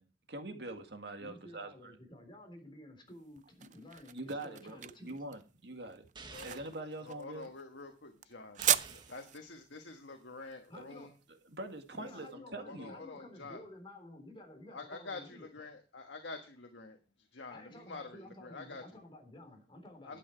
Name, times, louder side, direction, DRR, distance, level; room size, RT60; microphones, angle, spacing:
voice 1, 0.0-1.9 4.1-6.0 6.4-7.5 10.7-11.0 11.5-12.9, right 2 dB, 65° right, 6 dB, 1.9 m, -44 dB
voice 2, 1.2-5.2 10.7-11.1 11.9-15.5 17.5-20.2, left 1 dB, 30° left, 4 dB, 3.7 m, -52 dB
sound 1, 3.1-12.1, right 11 dB, 45° right, 0.5 m, -38 dB
sound 2, 6.1-6.8 8.6-9.2, right 3 dB, 25° right, 1.3 m, -50 dB
voice 3, 6.3-6.7 7.0-8.6 9.1-11.1 12.0-12.1 12.5-13.6 14.7-18.8 20.0-20.2, left 3 dB, 90° left, 4 dB, 1.4 m, -47 dB
11.5 x 8.7 x 4.6 m, 0.34 s
head